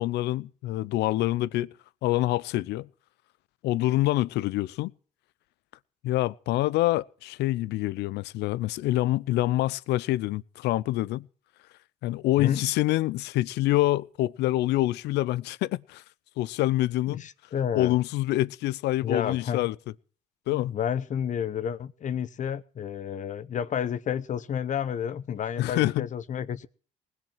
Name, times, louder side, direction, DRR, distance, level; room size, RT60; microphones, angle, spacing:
voice 1, 0.0-1.7 2.0-2.9 3.6-4.9 6.0-11.3 12.0-16.0 16.4-17.2 17.7-19.7 20.5-20.7 25.6-26.1, left 16 dB, 80° left, 0.7 m, -26 dB
voice 2, 17.1-17.9 19.0-19.7 20.5-26.7, left 8 dB, 50° left, 0.9 m, -31 dB
19.5 x 7.6 x 7.3 m
cardioid pair, 110°, 17 cm